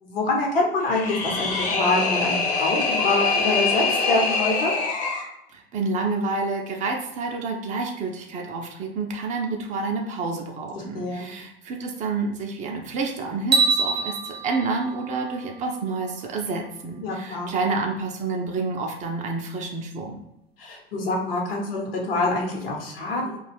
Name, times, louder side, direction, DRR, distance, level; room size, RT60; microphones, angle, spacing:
voice 1, 0.0-4.7 10.7-11.3 17.0-17.5 20.6-23.4, left 2 dB, 70° left, -1 dB, 0.9 m, -25 dB
sound 1, 0.8-5.3, left 3 dB, 25° left, 0.6 m, -24 dB
voice 2, 5.5-20.2, right 3 dB, 25° right, 2 dB, 0.4 m, -29 dB
sound 2, 13.5-15.8, right 4 dB, 90° right, 0.5 m, -25 dB
2.4 x 2.2 x 3.3 m, 0.85 s
figure-of-eight pair, 80°, 30 cm